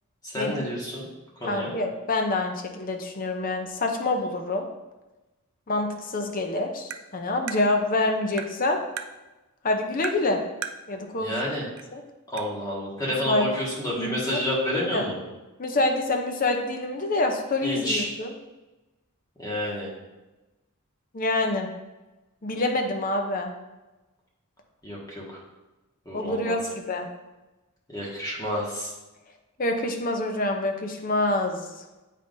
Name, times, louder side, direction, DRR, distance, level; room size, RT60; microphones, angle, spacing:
voice 1, 0.2-1.1 1.4-1.7 11.2-11.6 12.3-15.2 17.6-18.1 19.4-19.9 24.8-25.2 26.0-26.5 27.9-28.9, left 1 dB, 15° left, -5 dB, 1.6 m, -29 dB
voice 2, 1.5-4.7 5.7-8.8 9.6-10.4 10.9-11.3 11.9-12.0 13.2-13.5 13.9-14.4 14.9-15.0 15.6-18.3 21.1-21.7 22.4-23.5 26.1-27.1 29.6-31.8, left 2 dB, 40° left, 4 dB, 0.7 m, -26 dB
Tap, 6.9-7.0 7.5-7.6 8.4-8.5 9.0-9.1 10.0-10.2 10.6-10.8 11.8-11.9 12.4-12.5, right 8 dB, 65° right, 0.4 m, -34 dB
8.4 x 5.4 x 2.6 m, 1.1 s
head